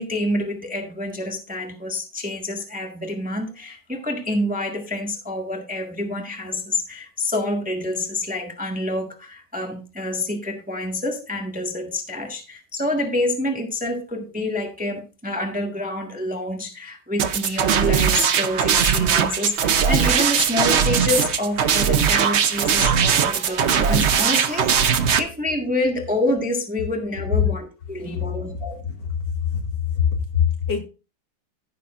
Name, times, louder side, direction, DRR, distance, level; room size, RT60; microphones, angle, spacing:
voice 1, 0.0-28.8, left 1 dB, 5° right, 1.3 m, -27 dB
sound 1, 17.2-25.2, right 7 dB, 70° right, 0.6 m, -20 dB
sound 2, 21.0-24.9, right 1 dB, 45° right, 2.9 m, -43 dB
voice 2, 28.0-29.7 29.9-30.8, left 8 dB, 60° left, 2.2 m, -25 dB
15.0 x 6.9 x 2.5 m
omnidirectional pair, 2.2 m